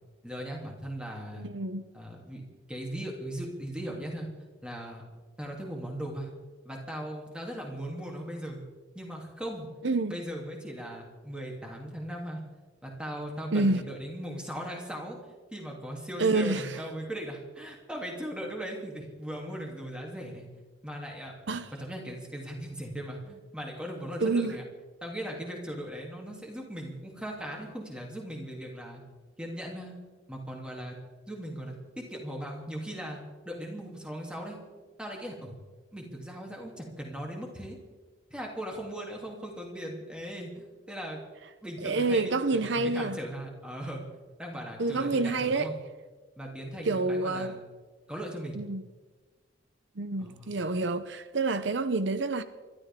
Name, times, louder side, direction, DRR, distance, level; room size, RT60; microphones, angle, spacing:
voice 1, 0.2-1.5 1.9-2.4 2.7-4.3 4.6-5.0 5.4-6.3 6.6-8.6 8.9-9.7 10.1-12.4 12.8-15.2 15.5-20.5 20.8-21.3 21.8-24.6 25.0-29.0 29.4-29.9 30.3-31.0 31.3-34.6 35.0-35.5 35.9-37.8 38.3-41.2 41.6-44.1 44.4-45.8 46.4-47.6 48.1-48.7 50.2-50.5, equal, 5° right, 3.1 m, -38 dB
voice 2, 1.3-1.9 9.8-10.2 13.5-13.8 16.2-16.8 21.5-21.7 24.2-24.6 41.8-43.2 44.8-45.7 46.8-47.5 48.6-48.8 50.0-52.4, right 3 dB, 70° right, 0.7 m, -28 dB
28.5 x 13.0 x 3.8 m
head